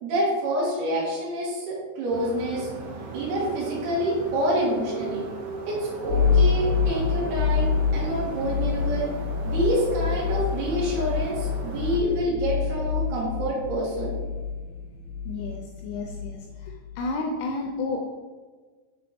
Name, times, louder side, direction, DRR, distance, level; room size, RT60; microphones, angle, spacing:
voice 1, 0.0-2.7 3.1-5.2 5.7-9.1 9.4-14.1, right 1 dB, 65° right, -7 dB, 2.8 m, -27 dB
sound 1, 2.1-12.0, right 3 dB, 85° right, 2.7 m, -37 dB
sound 2, 6.1-17.0, left 6 dB, 65° left, 1.6 m, -27 dB
voice 2, 15.3-16.4 17.0-18.1, left 3 dB, 85° left, 2 dB, 2.7 m, -31 dB
7.6 x 4.0 x 3.5 m, 1.4 s
omnidirectional pair, 5.9 m